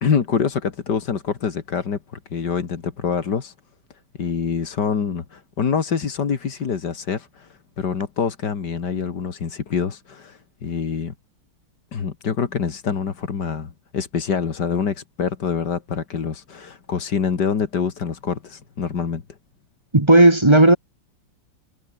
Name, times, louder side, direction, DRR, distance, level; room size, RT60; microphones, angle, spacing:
voice 1, 0.0-3.5 4.2-11.1 11.9-19.2, left 6 dB, 55° left, 2.5 m, -25 dB
voice 2, 19.9-20.8, right 1 dB, 15° right, 1.4 m, -12 dB
omnidirectional pair, 2.2 m